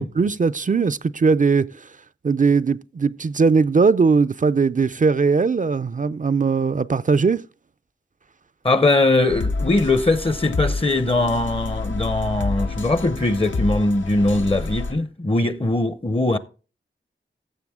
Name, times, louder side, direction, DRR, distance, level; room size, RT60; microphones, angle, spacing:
voice 1, 0.2-1.9 2.2-7.4, right 4 dB, 40° right, 0.4 m, -19 dB
voice 2, 8.6-16.4, left 2 dB, 25° left, 0.7 m, -21 dB
sound 1, 9.3-14.9, left 3 dB, 70° left, 0.8 m, -28 dB
14.5 x 6.9 x 3.6 m
cardioid pair, 40°, 20 cm